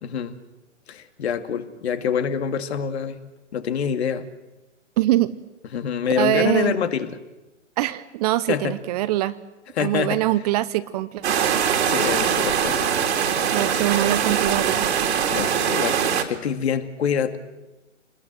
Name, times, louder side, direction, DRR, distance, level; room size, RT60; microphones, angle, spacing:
voice 1, 0.0-0.4 0.9-3.2 3.5-4.3 5.7-7.1 8.5-8.8 9.8-10.2 11.8-13.0 13.4-13.8 15.3-17.4, left 7 dB, 60° left, 8 dB, 2.5 m, -26 dB
voice 2, 5.0-5.4 6.1-6.8 7.8-9.4 9.8-11.6 13.5-14.9, right 15 dB, 30° right, 15 dB, 0.8 m, -23 dB
sound 1, 11.2-16.2, right 8 dB, 60° right, 3.2 m, -22 dB
27.0 x 20.5 x 7.9 m, 1.0 s
hypercardioid pair, 125°, 37 cm